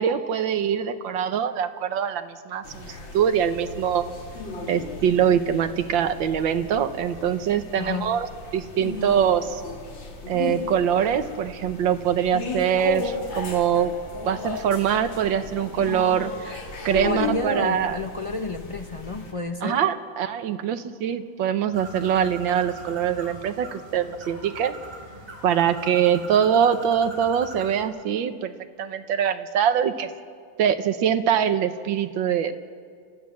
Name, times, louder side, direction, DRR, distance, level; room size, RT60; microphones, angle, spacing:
voice 1, 0.0-4.1 4.7-8.3 8.5-9.6 10.3-13.9 14.3-18.0 19.6-24.8 25.4-28.5 28.8-30.1 30.6-32.5, right 8 dB, 85° right, 10 dB, 1.7 m, -23 dB
sound 1, 2.6-19.3, left 3 dB, 85° left, 3.2 m, -35 dB
voice 2, 17.0-19.8, left 3 dB, 45° left, 5 dB, 0.4 m, -30 dB
Bird, 21.7-27.8, right 2 dB, 30° right, 4.1 m, -41 dB
30.0 x 13.5 x 7.3 m, 2.2 s
omnidirectional pair, 2.0 m